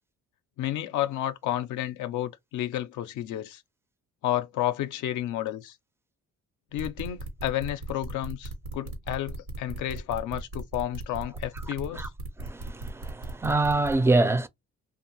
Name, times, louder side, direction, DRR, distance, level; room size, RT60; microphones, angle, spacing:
voice 1, 0.6-3.6 4.2-5.8 6.7-12.1, left 12 dB, 80° left, 0.5 m, -31 dB
sound 1, 6.8-13.9, right 2 dB, 85° right, 1.1 m, -37 dB
voice 2, 12.4-14.5, right 2 dB, 10° right, 0.4 m, -25 dB
2.6 x 2.4 x 2.8 m
cardioid pair, 90°, 30 cm